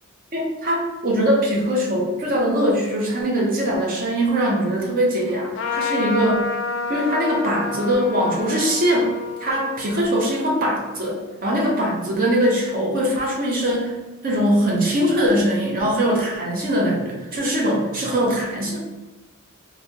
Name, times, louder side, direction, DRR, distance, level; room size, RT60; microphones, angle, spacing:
voice 1, 0.3-6.5 6.9-9.1 9.4-14.0 14.2-18.8, equal, 45° right, -2 dB, 0.6 m, -21 dB
Trumpet, 5.5-11.4, left 4 dB, 60° left, 0.4 m, -30 dB
3.1 x 2.7 x 2.7 m, 1.2 s
head